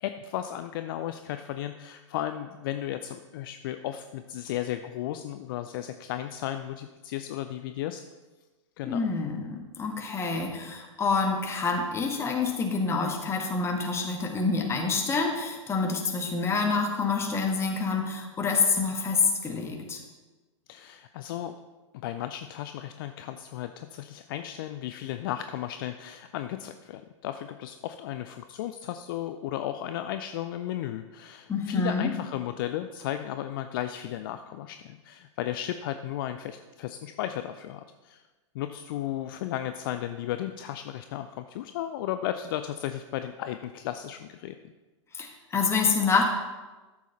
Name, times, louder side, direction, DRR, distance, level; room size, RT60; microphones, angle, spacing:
voice 1, 0.0-8.0 8.8-9.0 20.7-21.5 21.9-38.2 38.5-44.5, left 12 dB, 45° left, 9 dB, 0.5 m, -34 dB
voice 2, 8.8-20.0 31.5-32.1 45.1-46.2, left 4 dB, 15° left, 2 dB, 1.6 m, -27 dB
13.0 x 7.1 x 4.1 m, 1.2 s
figure-of-eight pair, 100°, 16 cm